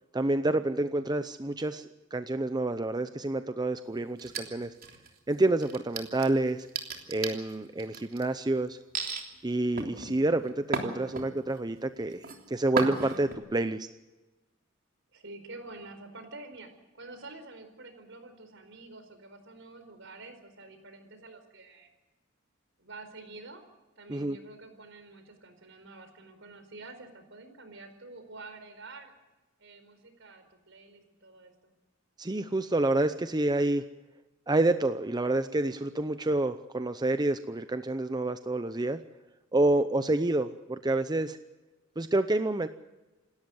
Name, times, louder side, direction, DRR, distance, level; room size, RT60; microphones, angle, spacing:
voice 1, 0.1-4.7 5.3-6.7 7.1-8.8 9.4-13.9 24.1-24.4 32.2-33.8 34.5-39.0 39.5-41.4 42.0-42.7, right 2 dB, 20° right, 10 dB, 0.7 m, -28 dB
sound 1, 4.2-5.2 5.6-8.2 8.9-9.2 9.8-11.6 12.0-12.4 12.8-13.3, right 4 dB, 50° right, 3.3 m, -35 dB
voice 2, 15.1-21.9 22.8-23.6 24.0-29.1 29.6-31.7, right 3 dB, 65° right, 8 dB, 4.6 m, -48 dB
28.0 x 13.0 x 8.0 m, 1.1 s
head